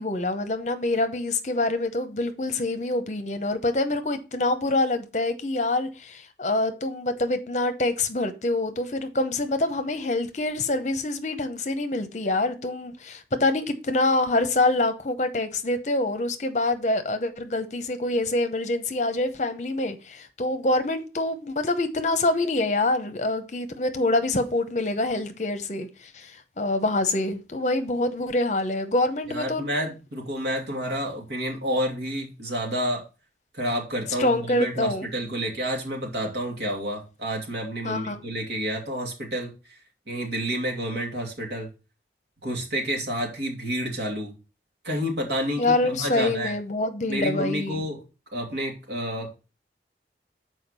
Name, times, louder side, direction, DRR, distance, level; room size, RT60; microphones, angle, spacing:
voice 1, 0.0-29.7 34.2-35.1 37.8-38.2 45.6-47.8, left 2 dB, 40° left, 0.8 m, -26 dB
voice 2, 29.3-33.0 33.5-39.5 40.1-41.7 42.4-44.3 44.8-46.5 47.1-48.0 48.3-49.4, equal, 85° right, 2.2 m, -29 dB
6.4 x 4.6 x 5.4 m
head